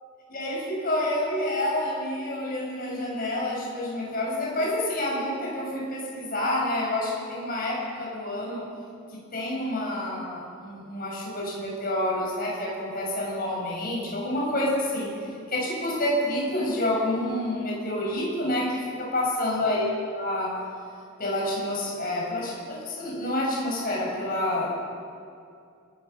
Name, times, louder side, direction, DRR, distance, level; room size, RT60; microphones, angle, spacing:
voice 1, 0.3-8.6 9.1-15.1 15.5-20.5 21.2-24.8, left 1 dB, 45° left, -4 dB, 7.2 m, -28 dB
28.0 x 15.0 x 7.2 m, 2.4 s
head